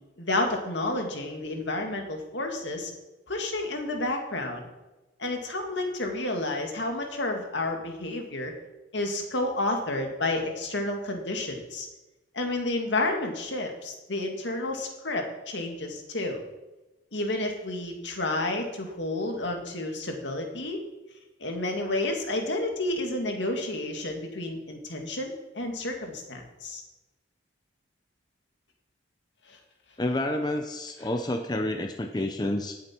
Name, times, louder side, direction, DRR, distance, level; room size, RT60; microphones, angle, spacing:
voice 1, 0.2-2.9 3.3-4.6 5.2-8.5 8.9-11.9 12.3-16.4 17.1-20.8 21.4-26.8 29.5-29.6, left 2 dB, 70° left, 3 dB, 2.0 m, -30 dB
voice 2, 30.0-32.8, left 1 dB, 20° left, 5 dB, 0.7 m, -29 dB
18.5 x 7.7 x 4.5 m, 1.1 s
head